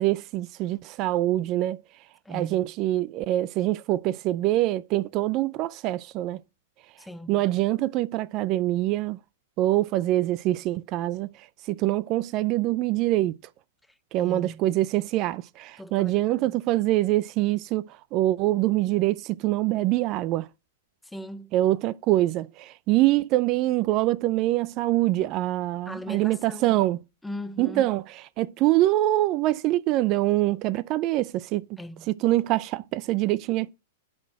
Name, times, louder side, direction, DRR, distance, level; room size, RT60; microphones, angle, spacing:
voice 1, 0.0-1.8 2.3-6.4 7.3-9.2 9.6-13.3 14.1-17.8 18.1-20.5 21.5-27.0 27.6-28.0 28.4-31.6 32.1-33.7, right 16 dB, 40° right, 0.4 m, -24 dB
voice 2, 2.2-2.7 7.0-7.4 13.9-14.7 15.8-16.6 21.0-21.5 25.9-26.8 27.2-27.9 31.8-32.1, equal, 5° left, 0.6 m, -39 dB
11.0 x 4.0 x 7.4 m
hypercardioid pair, 135°, 0 cm